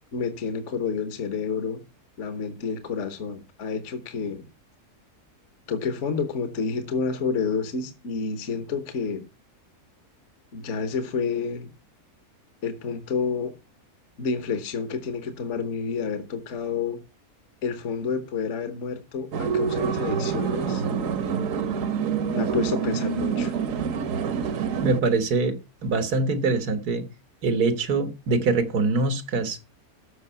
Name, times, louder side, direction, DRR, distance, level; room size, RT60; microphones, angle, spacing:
voice 1, 0.1-1.8 2.2-4.5 5.7-9.3 10.5-11.7 12.6-13.5 14.2-17.0 17.6-20.8 22.3-23.5, left 5 dB, 55° left, 1.3 m, -29 dB
sound 1, 19.3-25.0, right 7 dB, 65° right, 1.2 m, -26 dB
voice 2, 24.8-25.6 25.8-27.1 27.4-29.7, right 3 dB, 90° right, 1.9 m, -24 dB
13.5 x 5.3 x 5.4 m
omnidirectional pair, 1.6 m